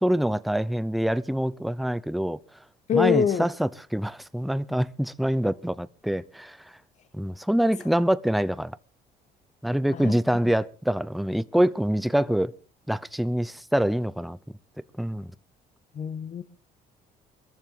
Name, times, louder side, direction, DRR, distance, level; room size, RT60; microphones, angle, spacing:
voice 1, 0.0-2.4 2.9-6.6 7.1-8.7 9.6-12.5 12.9-14.4 15.0-15.3, equal, ahead, 0.6 m, -25 dB
voice 2, 2.9-3.5 9.9-10.4 15.9-16.4, left 8 dB, 45° left, 1.1 m, -25 dB
22.5 x 14.5 x 3.8 m
cardioid pair, 110°, 17 cm